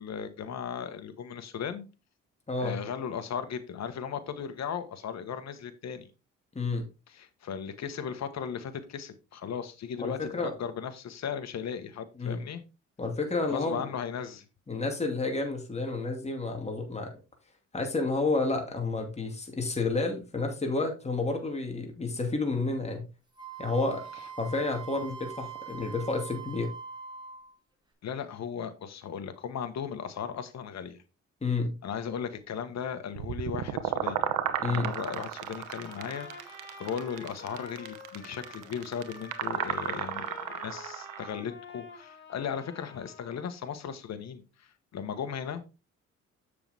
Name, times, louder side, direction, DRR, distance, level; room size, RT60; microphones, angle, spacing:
voice 1, 0.0-1.9 2.6-6.1 7.1-12.6 13.5-14.4 28.0-31.0 31.8-34.3 34.7-45.7, left 7 dB, 60° left, 1.4 m, -37 dB
voice 2, 2.5-2.8 6.5-6.9 10.0-10.5 12.2-12.4 13.0-13.9 14.7-17.1 17.7-23.1 23.6-26.7 31.4-31.7 34.6-34.9, left 3 dB, 20° left, 2.4 m, -30 dB
Wind instrument woodwind instrument, 23.4-27.5, right 7 dB, 15° right, 2.6 m, -43 dB
sound 1, 33.2-41.3, right 10 dB, 85° right, 1.1 m, -34 dB
Trumpet, 35.4-43.5, left 3 dB, 40° left, 4.3 m, -48 dB
7.7 x 6.8 x 3.5 m
cardioid pair, 90°, 30 cm